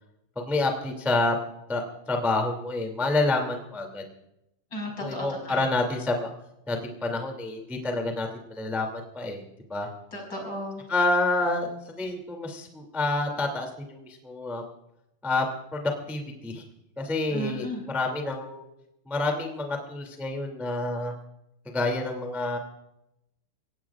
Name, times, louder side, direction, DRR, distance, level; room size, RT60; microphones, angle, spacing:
voice 1, 0.3-1.4 1.7-4.0 5.0-6.3 6.7-9.4 9.7-9.9 10.9-14.6 15.2-16.6 17.0-18.6 19.0-21.1 21.7-22.6, left 2 dB, ahead, 2 dB, 0.4 m, -28 dB
voice 2, 4.7-5.6 10.1-10.8 17.3-17.8, equal, 20° left, 0 dB, 5.8 m, -34 dB
24.0 x 18.0 x 2.5 m, 0.85 s
omnidirectional pair, 5.6 m